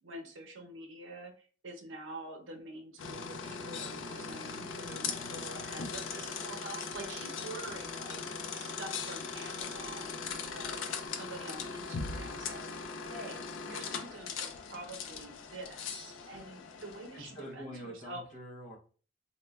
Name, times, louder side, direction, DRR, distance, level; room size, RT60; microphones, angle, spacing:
voice 1, 0.0-8.2 8.5-18.2, right 2 dB, 80° right, 3 dB, 0.6 m, -47 dB
sound 1, 3.0-17.4, left 5 dB, 80° left, 0.3 m, -40 dB
voice 2, 17.1-18.8, equal, 40° left, -2 dB, 0.7 m, -45 dB
3.0 x 2.1 x 2.2 m, 0.41 s
head